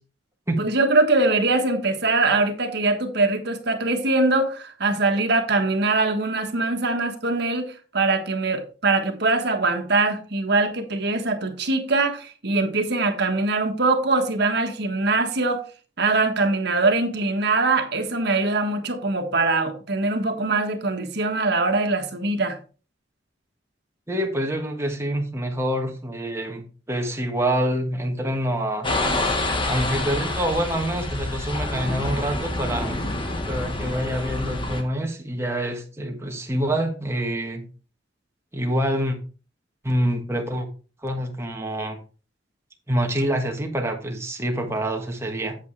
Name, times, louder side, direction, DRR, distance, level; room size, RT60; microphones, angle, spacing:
voice 1, 0.6-15.6 16.0-22.6, right 3 dB, 60° right, 1.5 m, -22 dB
voice 2, 24.1-28.9 29.6-33.0 33.5-37.7 38.5-39.2 39.8-40.7 41.0-42.0 42.9-45.6, right 1 dB, 15° right, 1.4 m, -26 dB
sound 1, 28.8-34.8, left 2 dB, 30° left, 1.3 m, -27 dB
8.2 x 8.2 x 3.3 m
head